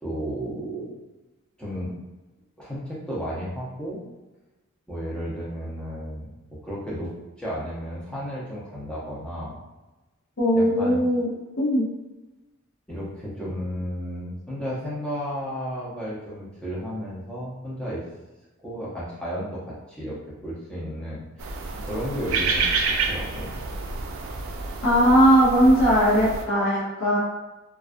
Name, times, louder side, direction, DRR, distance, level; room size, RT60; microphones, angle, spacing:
voice 1, 0.0-1.0 1.6-1.9 2.6-4.0 4.9-7.1 7.4-9.6 10.5-11.0 12.9-18.0 18.6-22.7 23.0-23.5, equal, 5° left, -8 dB, 0.6 m, -33 dB
voice 2, 10.4-11.3 11.6-11.9 24.8-27.2, equal, 65° left, -8 dB, 0.7 m, -19 dB
sound 1, 21.4-26.4, right 4 dB, 90° right, 0.3 m, -28 dB
2.3 x 2.3 x 2.4 m, 1.1 s
head